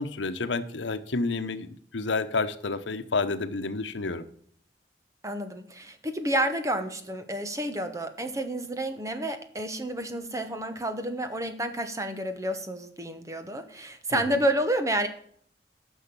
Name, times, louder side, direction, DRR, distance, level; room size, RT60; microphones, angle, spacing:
voice 1, 0.0-4.2 14.1-14.4, left 3 dB, 90° left, 10 dB, 0.9 m, -30 dB
voice 2, 5.2-15.1, right 1 dB, 15° right, 9 dB, 1.0 m, -30 dB
10.0 x 6.4 x 6.9 m, 0.62 s
head